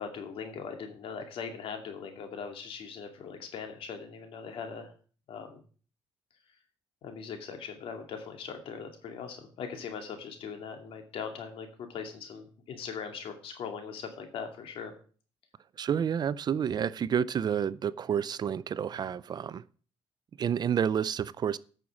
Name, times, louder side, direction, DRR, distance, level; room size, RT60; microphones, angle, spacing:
voice 1, 0.0-4.9 5.3-5.6 7.0-14.9, left 6 dB, 75° left, 2.4 m, -40 dB
voice 2, 15.8-19.6 20.4-21.6, right 8 dB, 50° right, 0.5 m, -29 dB
9.1 x 6.4 x 7.2 m
cardioid pair, 95°, 9 cm